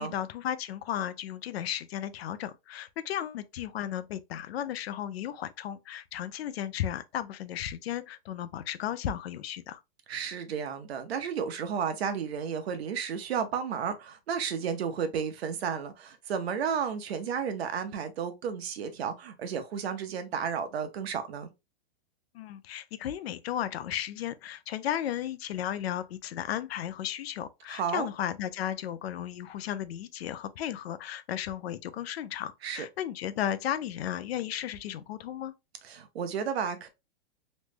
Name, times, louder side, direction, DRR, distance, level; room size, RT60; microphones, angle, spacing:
voice 1, 0.0-9.8 22.3-35.5, left 11 dB, 85° left, 0.5 m, -34 dB
voice 2, 10.1-21.5 27.7-28.1 32.6-32.9 35.8-36.9, right 7 dB, 85° right, 0.8 m, -32 dB
3.1 x 2.0 x 3.3 m
supercardioid pair, 165°, 30 cm